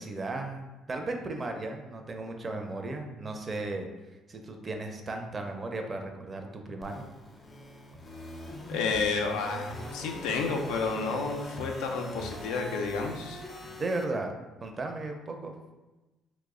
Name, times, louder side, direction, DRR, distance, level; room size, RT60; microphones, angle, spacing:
voice 1, 0.0-3.9 4.3-7.1 13.6-14.3 14.6-15.5, right 2 dB, 30° right, 3 dB, 0.4 m, -35 dB
sound 1, 6.8-14.0, left 1 dB, 30° left, 0.6 m, -42 dB
voice 2, 8.7-13.4, left 4 dB, 85° left, 3 dB, 0.4 m, -31 dB
3.1 x 2.0 x 3.5 m, 1.1 s
supercardioid pair, 85°, 0 cm